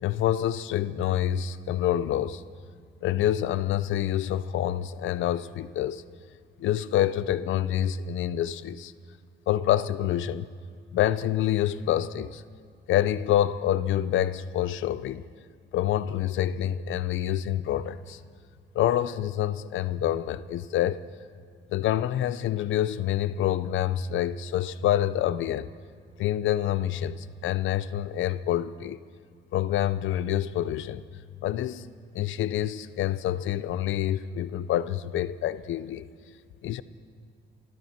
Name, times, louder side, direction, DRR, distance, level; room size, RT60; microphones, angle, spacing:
voice 1, 0.0-2.4 3.0-6.0 6.6-8.9 9.5-10.5 10.9-12.4 12.9-15.2 15.7-18.2 18.7-21.0 21.7-25.7 26.2-29.0 29.5-31.0 31.4-31.9 32.1-36.0 36.6-36.8, left 11 dB, 75° left, 0.6 m, -27 dB
24.0 x 14.0 x 4.4 m
cardioid pair, 90°, 20 cm